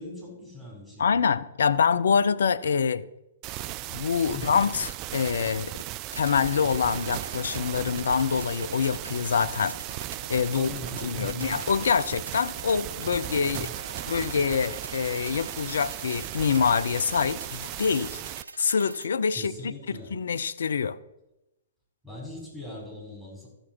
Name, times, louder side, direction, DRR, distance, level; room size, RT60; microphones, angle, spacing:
voice 1, 0.0-1.2 4.3-4.6 10.5-11.5 13.5-13.7 19.3-20.2 22.0-23.5, left 1 dB, 5° right, 4.7 m, -40 dB
voice 2, 1.0-3.1 3.9-5.7 6.2-9.8 10.3-10.7 11.0-13.7 14.1-18.2 18.6-21.0, left 6 dB, 65° left, 0.5 m, -25 dB
sound 1, 3.4-18.4, right 15 dB, 30° right, 0.3 m, -37 dB
sound 2, 6.1-19.1, right 3 dB, 75° right, 0.6 m, -43 dB
14.0 x 6.6 x 4.6 m
figure-of-eight pair, 115°, 0 cm